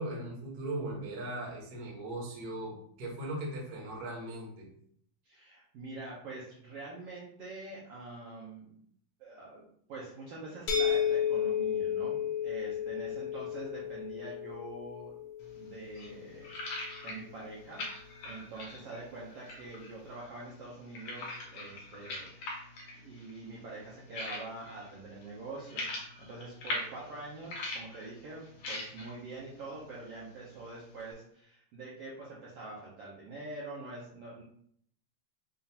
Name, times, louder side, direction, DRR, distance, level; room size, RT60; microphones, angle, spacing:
voice 1, 0.0-4.7, right 1 dB, 50° right, -3 dB, 1.1 m, -38 dB
voice 2, 5.2-8.8 9.2-15.2 15.5-17.8 18.2-22.7 23.0-25.9 26.2-28.4 28.7-34.4, right 2 dB, 70° right, -6 dB, 1.5 m, -45 dB
sound 1, 10.7-16.4, left 8 dB, 90° left, 1.3 m, -33 dB
sound 2, 15.4-31.1, left 2 dB, 70° left, 1.5 m, -43 dB
5.5 x 2.4 x 2.8 m, 0.65 s
omnidirectional pair, 3.5 m